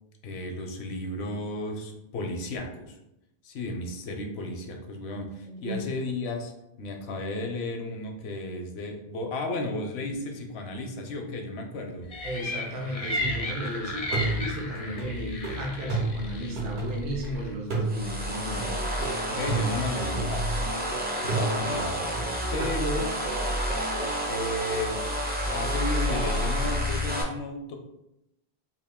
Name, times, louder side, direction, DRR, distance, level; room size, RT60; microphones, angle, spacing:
voice 1, 0.2-3.0 3.4-6.5 6.8-12.1 19.3-20.7 21.2-22.0 22.5-23.1 24.3-25.0 25.5-27.8, left 2 dB, 80° left, 4 dB, 0.8 m, -33 dB
voice 2, 5.5-5.9 12.2-18.9 22.6-22.7, equal, 55° right, -1 dB, 0.7 m, -35 dB
sound 1, 12.1-17.5, left 2 dB, 50° left, 0.5 m, -34 dB
sound 2, 13.2-13.7 14.1-17.3 17.7-20.9 21.3-22.7, right 3 dB, 80° right, 1.2 m, -32 dB
sound 3, 17.9-27.2, equal, 15° right, 0.3 m, -29 dB
2.9 x 2.5 x 3.5 m, 0.85 s
omnidirectional pair, 1.1 m